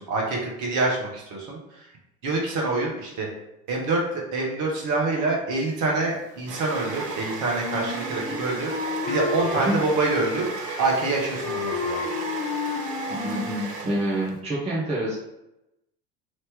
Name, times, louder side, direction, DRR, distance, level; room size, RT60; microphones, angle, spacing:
voice 1, 0.0-1.6 2.2-3.3 3.7-8.7 9.1-10.5 10.8-12.0, right 3 dB, 40° right, -1 dB, 1.2 m, -26 dB
sound 1, 5.7-14.4, right 3 dB, 85° right, 0.6 m, -35 dB
Wind instrument woodwind instrument, 7.6-9.7 10.1-11.1 11.4-13.6, left 4 dB, 30° left, 1.1 m, -31 dB
voice 2, 13.2-15.2, right 1 dB, 15° right, -5 dB, 0.8 m, -27 dB
3.1 x 2.8 x 3.6 m, 0.88 s
figure-of-eight pair, 75°, 47 cm